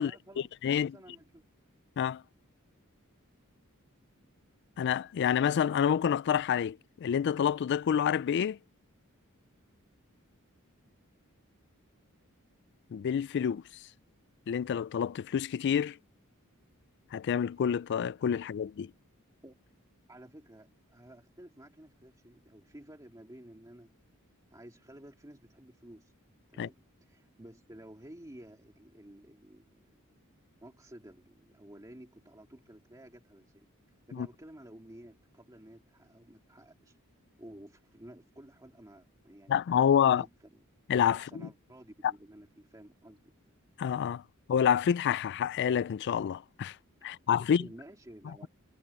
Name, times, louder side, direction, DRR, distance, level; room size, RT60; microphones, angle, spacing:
voice 1, 0.0-1.4 19.4-19.6 20.1-23.9 24.5-26.1 26.5-30.2 30.6-33.7 34.1-37.0 37.4-39.6 40.0-40.6 41.1-43.3 47.6-48.5, right 1 dB, 15° right, 2.2 m, -52 dB
voice 2, 4.8-8.6 12.9-13.6 14.5-16.0 17.1-18.9 26.6-26.7 34.1-34.3 39.5-40.2 40.9-41.4 43.8-44.2 44.5-46.8 47.0-47.7, left 8 dB, 50° left, 0.3 m, -28 dB
head